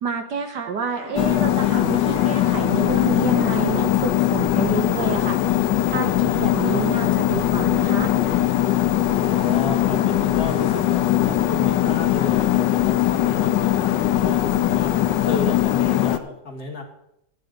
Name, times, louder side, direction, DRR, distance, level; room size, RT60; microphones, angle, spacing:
voice 1, 0.0-5.6 5.9-8.1, right 5 dB, 60° right, 7 dB, 1.5 m, -28 dB
sound 1, 0.9-1.3 2.1-2.7 3.3-3.7 4.5-5.1 6.3-7.0 7.8-8.5 9.3-9.8, right 1 dB, 80° right, 6.5 m, -41 dB
sound 2, 1.2-16.2, left 13 dB, 70° left, 1.3 m, -20 dB
voice 2, 5.9-7.2 9.0-16.8, left 3 dB, 45° left, -1 dB, 2.3 m, -33 dB
12.0 x 9.6 x 5.2 m, 0.80 s
omnidirectional pair, 2.2 m